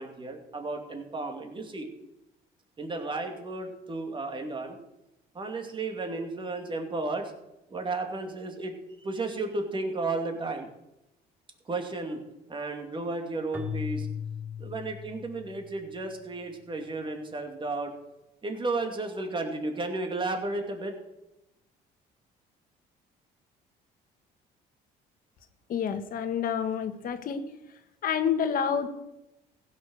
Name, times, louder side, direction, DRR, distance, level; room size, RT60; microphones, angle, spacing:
voice 1, 0.0-1.9 2.8-4.8 5.3-7.3 7.7-10.7 11.7-12.2 12.5-14.1 14.6-17.9 18.4-20.9, right 3 dB, 30° right, 4 dB, 2.4 m, -33 dB
Keyboard (musical), 13.5-15.8, left 8 dB, 10° right, 1.5 m, -37 dB
voice 2, 25.7-27.5 28.0-28.9, left 7 dB, 55° left, 9 dB, 1.4 m, -28 dB
15.5 x 6.7 x 6.5 m, 0.90 s
cardioid pair, 110°, 17 cm